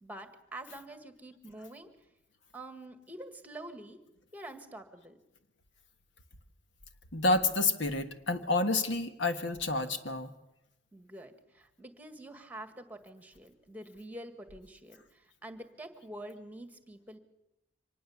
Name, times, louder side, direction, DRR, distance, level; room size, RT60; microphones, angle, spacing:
voice 1, 0.0-1.9 2.5-4.0 4.3-5.2 10.9-17.2, right 1 dB, 10° right, 8 dB, 1.7 m, -46 dB
voice 2, 7.1-10.3, left 2 dB, 70° left, 7 dB, 1.6 m, -29 dB
25.0 x 19.5 x 7.2 m, 0.89 s
head